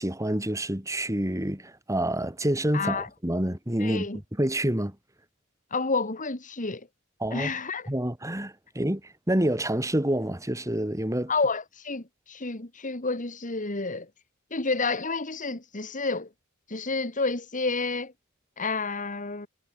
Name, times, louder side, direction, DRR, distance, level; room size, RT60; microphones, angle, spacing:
voice 1, 0.0-4.1 4.4-4.9 7.2-7.5 7.9-9.0 9.3-11.3, right 1 dB, 15° right, 2.9 m, -27 dB
voice 2, 2.7-3.1 3.8-4.2 5.7-6.9 7.3-7.9 11.3-14.1 14.5-16.3 16.7-18.1 18.6-19.5, left 3 dB, 40° left, 2.3 m, -30 dB
head